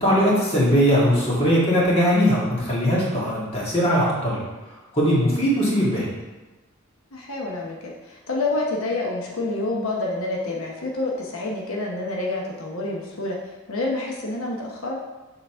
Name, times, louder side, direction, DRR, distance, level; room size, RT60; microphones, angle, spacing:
voice 1, 0.0-4.4 4.9-6.1, equal, 30° left, -6 dB, 2.0 m, -20 dB
voice 2, 7.1-15.0, left 2 dB, 90° left, -2 dB, 0.9 m, -28 dB
6.7 x 4.0 x 4.4 m, 1.1 s
head